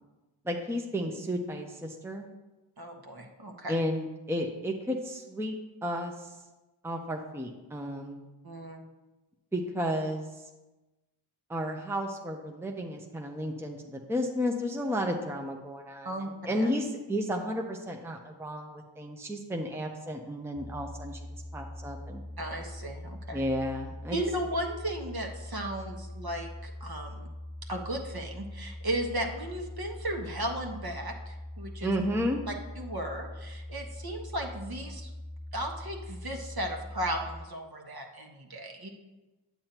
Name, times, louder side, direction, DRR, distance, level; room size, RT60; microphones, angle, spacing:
voice 1, 0.4-2.3 3.7-5.5 5.8-6.3 6.8-8.2 9.5-10.4 11.5-21.2 21.5-22.2 23.3-24.2 31.8-32.4, equal, 5° right, 2 dB, 0.8 m, -32 dB
voice 2, 2.8-3.8 8.4-8.8 16.0-16.7 22.4-23.4 24.1-27.3 27.7-31.9 32.5-35.1 35.5-38.9, right 1 dB, 45° right, 1 dB, 1.4 m, -35 dB
sound 1, 20.6-37.5, left 1 dB, 15° left, 0.3 m, -42 dB
8.6 x 7.7 x 3.0 m, 1.1 s
cardioid pair, 45°, 49 cm